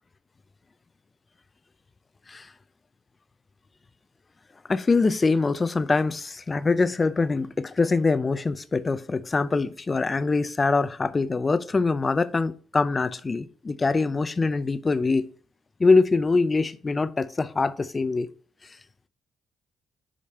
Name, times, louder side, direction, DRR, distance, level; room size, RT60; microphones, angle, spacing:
voice 1, 4.7-15.3 15.8-18.3, left 3 dB, 30° left, 0.5 m, -23 dB
5.1 x 5.0 x 4.3 m
cardioid pair, 90°, 0 cm